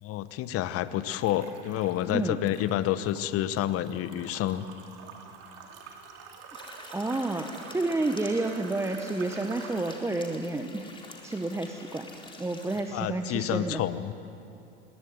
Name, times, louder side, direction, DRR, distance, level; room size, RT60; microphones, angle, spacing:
voice 1, 0.0-4.7 12.9-14.1, left 12 dB, 40° left, 14 dB, 1.0 m, -29 dB
sound 1, 1.1-2.1 2.5-10.1, right 5 dB, 45° right, 3.2 m, -47 dB
voice 2, 2.1-2.4 6.9-10.9 11.2-12.1 12.4-13.8, right 2 dB, 10° right, 6 dB, 1.0 m, -30 dB
sound 2, 6.5-12.8, left 2 dB, 15° left, 4.0 m, -47 dB
21.5 x 18.0 x 9.4 m, 2.7 s
hypercardioid pair, 90°, 34 cm